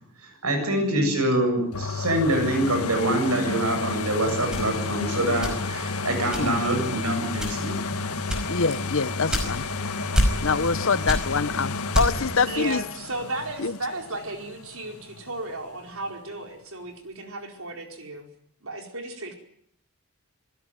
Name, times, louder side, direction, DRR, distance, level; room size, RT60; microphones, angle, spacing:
voice 1, 0.2-8.0, right 1 dB, 90° right, 5 dB, 7.7 m, -25 dB
sound 1, 1.7-15.4 15.9-16.0, left 4 dB, 85° left, 1.7 m, -31 dB
sound 2, 4.5-5.9 6.3-6.8 7.3-7.8 8.3-9.8 10.1-10.8 11.0-12.4, equal, 5° right, 5.2 m, -26 dB
voice 2, 8.5-9.6 10.4-12.8 13.6-13.8, left 4 dB, 65° left, 15 dB, 0.9 m, -25 dB
voice 3, 12.4-18.3 18.6-19.3, right 2 dB, 70° right, 4 dB, 4.7 m, -34 dB
27.0 x 16.5 x 9.2 m, 0.68 s
head